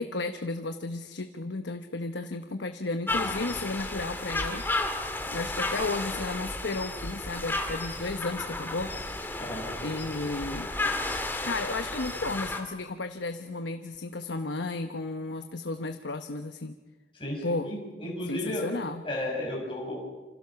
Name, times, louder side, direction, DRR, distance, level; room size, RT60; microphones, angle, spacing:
voice 1, 0.0-4.6 5.3-8.9 9.8-10.7 11.4-16.8 17.4-17.7 18.3-19.0, left 3 dB, 90° left, 8 dB, 1.0 m, -33 dB
sound 1, 3.1-12.6, left 2 dB, 10° left, 1.8 m, -33 dB
voice 2, 17.1-18.7 19.0-20.0, left 1 dB, 30° left, -2 dB, 6.1 m, -33 dB
28.0 x 26.0 x 5.8 m, 1.3 s
head